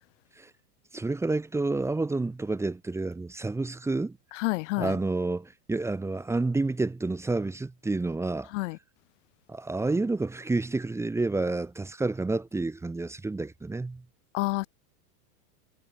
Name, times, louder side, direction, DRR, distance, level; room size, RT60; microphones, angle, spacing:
voice 1, 0.9-4.2 4.8-8.5 9.5-14.0, right 3 dB, 5° right, 1.7 m, -29 dB
voice 2, 4.4-4.9 8.5-8.8 14.3-14.7, left 22 dB, 50° left, 1.3 m, -28 dB
supercardioid pair, 150°, 47 cm